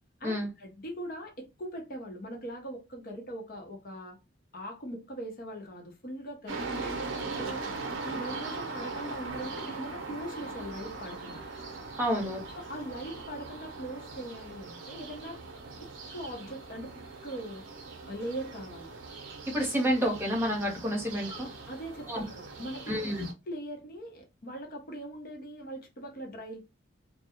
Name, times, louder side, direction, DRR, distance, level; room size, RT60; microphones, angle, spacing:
voice 1, 0.2-4.2 4.5-7.0 7.3-7.6 8.0-11.4 12.5-15.4 16.1-17.6 18.1-18.9 21.3-22.9 23.5-26.6, right 1 dB, 50° left, 0.7 m, -41 dB
sound 1, 6.5-23.3, right 3 dB, 80° right, 0.6 m, -40 dB
voice 2, 12.0-12.4 19.5-21.5 22.1-22.2 22.9-23.2, equal, 10° right, 0.8 m, -29 dB
2.3 x 2.0 x 2.8 m
head